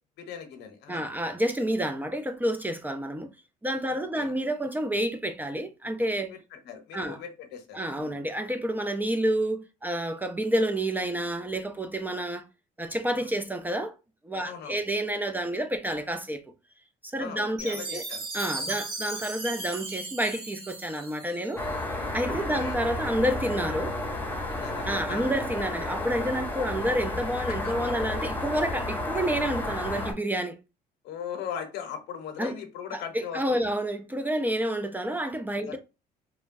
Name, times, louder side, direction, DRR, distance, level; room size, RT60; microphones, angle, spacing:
voice 1, 0.2-1.1 3.9-4.3 6.3-8.2 13.1-13.3 14.4-14.8 17.2-18.2 18.7-18.8 22.5-22.8 24.5-25.3 27.5-27.9 31.0-33.7 35.6-35.8, left 8 dB, 85° left, 0.7 m, -39 dB
voice 2, 0.9-3.3 3.6-6.3 6.9-7.2 7.7-12.4 12.8-14.0 14.2-16.4 17.0-18.0 18.3-21.6 22.1-23.9 24.9-30.6 32.4-32.6 32.9-35.8, right 1 dB, 10° right, 0.3 m, -29 dB
Chime, 17.6-21.8, right 2 dB, 70° right, 1.7 m, -37 dB
sound 1, 21.6-30.1, left 2 dB, 10° left, 0.7 m, -32 dB
2.9 x 2.2 x 2.5 m
cardioid pair, 110°, 17 cm